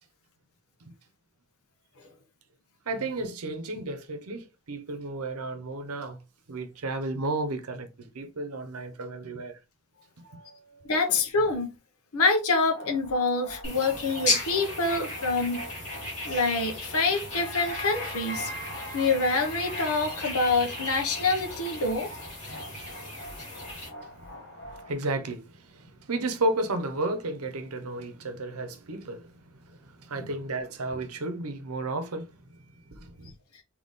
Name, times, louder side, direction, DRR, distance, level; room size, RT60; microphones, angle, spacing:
voice 1, 2.9-6.2 6.5-9.6 10.2-10.9 24.0-32.3 32.9-33.3, right 2 dB, 80° right, 0.8 m, -33 dB
voice 2, 10.9-11.7 12.1-15.6 16.2-18.5 18.9-22.1, left 3 dB, 75° left, 0.8 m, -26 dB
sound 1, 12.7-24.9, equal, 55° left, 1.1 m, -42 dB
sound 2, 13.6-23.9, left 2 dB, 35° left, 2.1 m, -35 dB
4.0 x 2.9 x 3.6 m
head